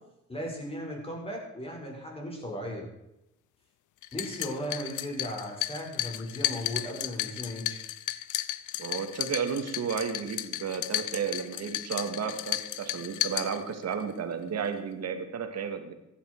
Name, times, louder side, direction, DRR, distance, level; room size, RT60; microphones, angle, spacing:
voice 1, 0.3-2.9 4.1-7.8, equal, 20° left, 0 dB, 6.0 m, -36 dB
sound 1, 4.0-14.0, left 14 dB, 80° left, 0.7 m, -34 dB
voice 2, 8.8-15.9, right 6 dB, 60° right, 7 dB, 2.2 m, -33 dB
15.5 x 11.5 x 4.8 m, 0.87 s
cardioid pair, 90°, 30 cm